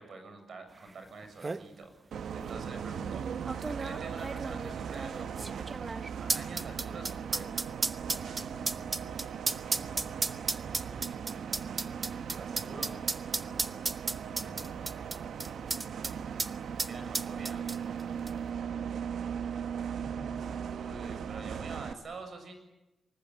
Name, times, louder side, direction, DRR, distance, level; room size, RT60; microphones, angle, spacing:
voice 1, 0.0-1.9 2.3-3.3 3.6-5.7 6.2-7.6 12.4-13.0 16.8-17.6 20.2-22.6, right 3 dB, 60° right, 6 dB, 6.9 m, -46 dB
sound 1, 0.9-1.0 1.2-1.6 2.4-2.5 3.5-16.1 16.4-16.5 16.8-18.0 18.3-18.4, right 3 dB, 30° right, 1.0 m, -34 dB
Bus, 2.1-21.9, right 7 dB, 85° right, 1.0 m, -38 dB
voice 2, 6.7-7.4 8.3-9.3 9.7-11.4 13.4-14.8 18.2-19.2 20.0-20.4, left 2 dB, 45° left, 6 dB, 5.7 m, -54 dB
24.5 x 20.5 x 9.1 m, 0.97 s
wide cardioid pair, 120°, 0 cm